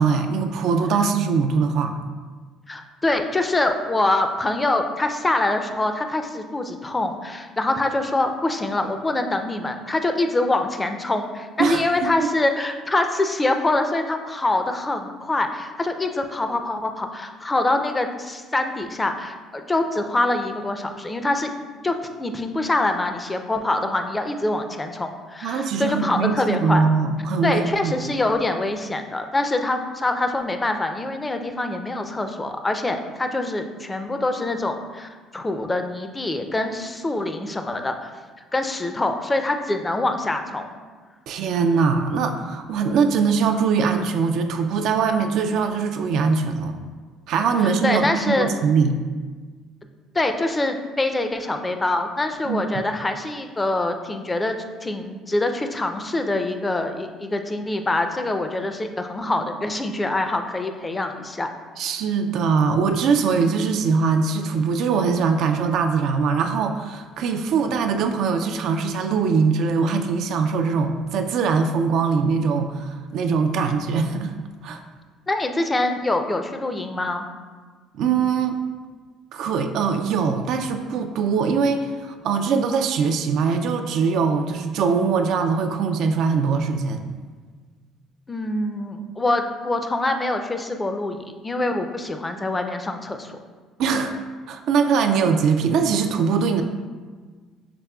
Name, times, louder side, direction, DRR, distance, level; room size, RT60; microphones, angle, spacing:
voice 1, 0.0-1.9 11.6-12.3 25.4-27.9 41.3-46.8 47.3-49.0 52.5-52.6 61.8-74.3 74.6-74.8 77.9-78.6 79.3-87.1 93.8-94.1 94.5-96.6, right 5 dB, 70° right, 6 dB, 0.3 m, -22 dB
voice 2, 2.7-21.5 21.8-26.8 27.4-38.1 38.5-40.7 47.6-48.5 50.1-61.5 75.3-77.3 88.3-93.3, left 2 dB, 20° left, 6 dB, 0.4 m, -25 dB
5.9 x 3.5 x 2.3 m, 1.4 s
supercardioid pair, 85°, 0 cm